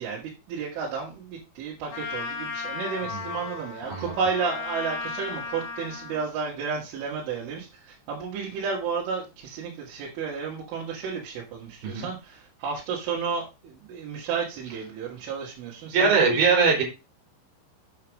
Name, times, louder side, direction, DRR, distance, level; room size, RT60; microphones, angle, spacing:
voice 1, 0.0-16.4, right 5 dB, 90° right, -5 dB, 4.6 m, -32 dB
Trumpet, 1.9-6.2, left 5 dB, 60° left, 4.0 m, -35 dB
voice 2, 15.9-16.8, right 5 dB, 50° right, -1 dB, 5.2 m, -21 dB
8.5 x 6.8 x 4.8 m, 0.28 s
omnidirectional pair, 5.4 m